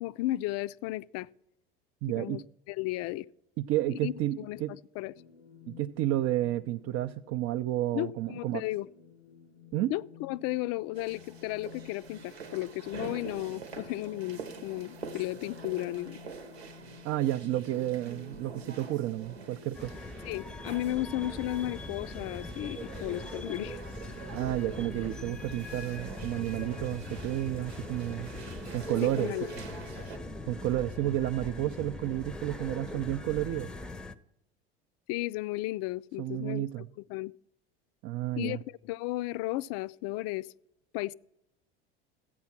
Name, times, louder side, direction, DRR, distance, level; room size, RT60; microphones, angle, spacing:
voice 1, 0.0-1.3 2.2-2.4 2.7-3.2 3.9-5.1 7.9-8.9 9.9-16.2 20.2-23.8 29.2-29.5 35.1-36.6 37.1-37.3 38.4-40.5 40.9-41.1, left 17 dB, 50° left, 0.4 m, -34 dB
voice 2, 2.0-2.4 3.6-4.7 5.7-8.6 9.7-9.9 17.0-20.0 24.3-28.3 28.7-29.3 30.5-33.7 36.2-36.9 38.0-38.6, right 14 dB, 50° right, 0.5 m, -31 dB
sound 1, 5.1-20.7, left 7 dB, 85° left, 0.7 m, -53 dB
sound 2, 10.9-30.2, right 5 dB, 90° right, 1.1 m, -46 dB
sound 3, 19.7-34.2, left 2 dB, 5° left, 0.6 m, -41 dB
13.0 x 8.5 x 5.8 m
hypercardioid pair, 80°, 31 cm